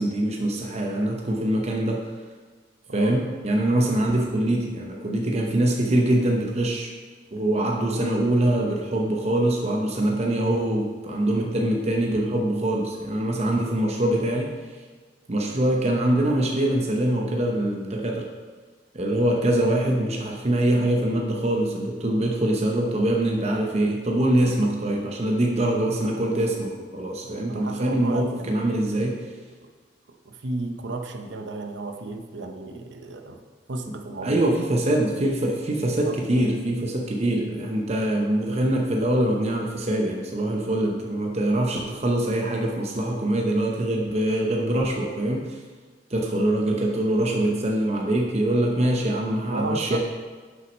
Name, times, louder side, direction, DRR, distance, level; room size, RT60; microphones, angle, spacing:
voice 1, 0.0-2.0 2.9-6.9 7.3-14.5 15.3-18.3 18.9-29.2 34.2-45.6 46.1-50.0, right 1 dB, 35° right, 0 dB, 0.7 m, -24 dB
voice 2, 27.2-29.1 29.6-29.7 30.1-33.4 33.7-34.6 36.0-36.5 49.4-50.0, right 3 dB, 70° right, 4 dB, 0.8 m, -34 dB
6.4 x 5.8 x 5.3 m, 1.4 s
head